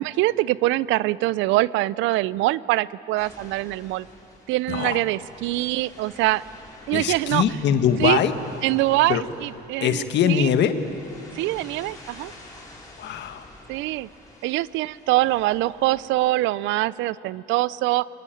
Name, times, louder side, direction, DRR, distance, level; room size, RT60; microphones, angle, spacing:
voice 1, 0.0-4.1 4.5-6.4 6.9-7.4 8.0-8.2 8.6-10.5 11.3-12.3 13.7-14.1 14.4-18.1, right 17 dB, 70° right, 20 dB, 0.6 m, -23 dB
sound 1, 3.2-16.1, left 2 dB, 20° left, 6.1 m, -48 dB
voice 2, 4.7-5.0 6.9-8.3 9.1-9.2 9.8-10.8 13.0-13.5, left 8 dB, 60° left, 8 dB, 1.7 m, -22 dB
28.0 x 22.5 x 9.2 m, 3.0 s
supercardioid pair, 85°, 20 cm